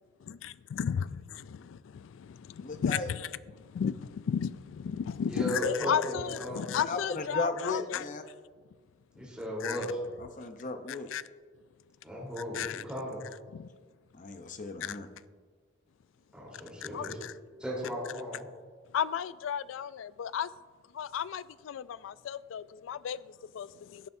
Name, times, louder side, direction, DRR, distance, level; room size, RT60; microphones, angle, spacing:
voice 1, 0.3-8.3 9.6-9.9 10.9-11.2 12.5-12.8 13.5-13.7 14.8-15.0 16.8-17.3 18.9-20.5 20.9-24.1, left 8 dB, 75° left, 0.3 m, -34 dB
voice 2, 2.6-3.1 6.7-8.2 10.4-11.1 14.2-15.1, left 3 dB, 40° left, 0.7 m, -36 dB
voice 3, 5.3-6.6 9.2-9.9 12.0-13.2 16.3-17.2 17.6-18.5, equal, 5° right, 3.6 m, -36 dB
16.5 x 9.2 x 2.7 m
head